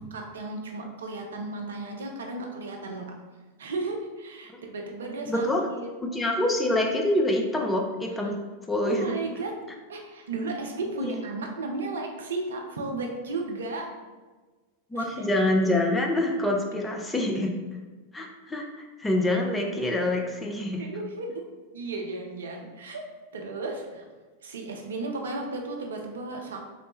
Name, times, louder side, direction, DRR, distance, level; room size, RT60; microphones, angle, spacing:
voice 1, 0.1-3.1 3.6-5.5 5.8-5.9 8.2-8.3 8.8-9.5 9.9-13.9 14.9-15.1 20.8-21.3 21.7-23.0 23.3-24.0 24.4-26.7, right 3 dB, 65° right, 1 dB, 0.4 m, -34 dB
voice 2, 5.3-5.7 6.0-8.4 8.7-9.1 11.0-11.1 14.9-17.6 18.1-20.8, left 1 dB, 10° left, 0 dB, 0.4 m, -26 dB
3.1 x 2.1 x 2.9 m, 1.3 s
figure-of-eight pair, 90°, 0 cm